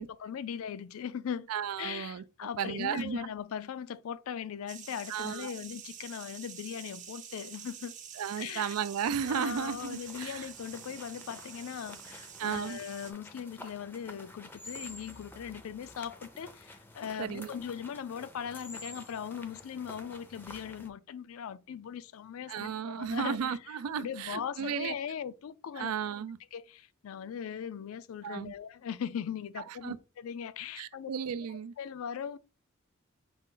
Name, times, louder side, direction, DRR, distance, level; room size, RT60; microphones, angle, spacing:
voice 1, 0.0-1.5 1.8-7.9 8.4-8.8 9.2-23.6 24.0-25.9 26.5-31.1 31.5-32.4, left 8 dB, 70° left, 0.3 m, -39 dB
voice 2, 1.5-2.2 2.6-3.3 5.1-5.5 8.2-10.5 12.4-12.8 17.2-17.5 22.5-25.0 25.8-26.4 28.2-28.5 29.8-30.0 30.8-31.7, right 7 dB, 90° right, 0.4 m, -34 dB
sound 1, 4.7-13.1, right 8 dB, 35° right, 0.6 m, -48 dB
sound 2, 9.1-20.9, left 1 dB, 10° left, 0.5 m, -50 dB
5.2 x 2.4 x 3.7 m
head